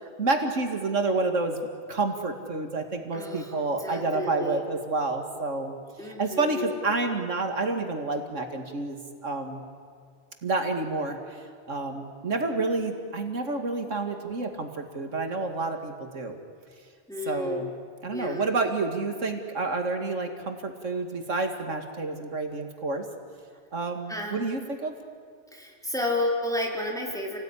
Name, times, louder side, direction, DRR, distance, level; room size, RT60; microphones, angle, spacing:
voice 1, 0.2-5.7 6.2-9.6 10.4-11.2 11.7-16.4 17.3-17.7 18.0-23.0 23.7-24.9, right 3 dB, 85° right, 5 dB, 2.5 m, -29 dB
voice 2, 3.1-3.5 3.8-4.6 6.0-6.7 17.1-17.6 18.1-18.5 24.1-24.6 25.5-27.4, left 1 dB, 5° left, -1 dB, 4.2 m, -31 dB
28.5 x 18.5 x 10.0 m, 2.1 s
omnidirectional pair, 1.3 m